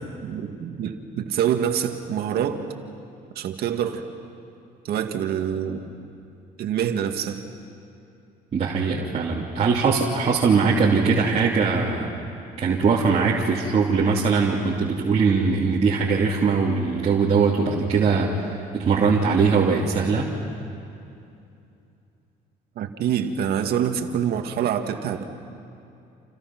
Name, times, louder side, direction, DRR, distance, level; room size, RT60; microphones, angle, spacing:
voice 1, 0.0-2.7 3.4-4.1 4.8-5.9 6.6-7.4 22.8-25.2, right 9 dB, 70° right, 5 dB, 2.0 m, -26 dB
voice 2, 8.5-12.1 12.6-20.3, right 5 dB, 40° right, -5 dB, 2.9 m, -21 dB
29.0 x 29.0 x 6.1 m, 2.6 s
cardioid pair, 110°, 17 cm